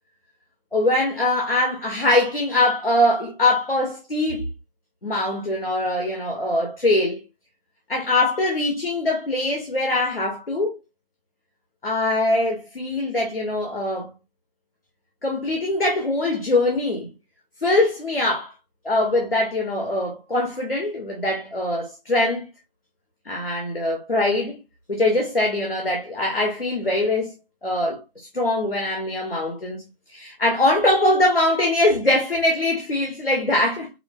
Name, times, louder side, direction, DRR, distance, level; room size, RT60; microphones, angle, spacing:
voice 1, 0.7-4.5 5.0-7.2 7.9-10.8 11.8-14.1 15.2-17.1 17.6-18.5 18.8-22.4 23.2-24.6 24.9-27.3 27.6-33.9, left 1 dB, 70° left, 1.2 m, -22 dB
4.8 x 2.0 x 2.4 m
figure-of-eight pair, 170°, 30 cm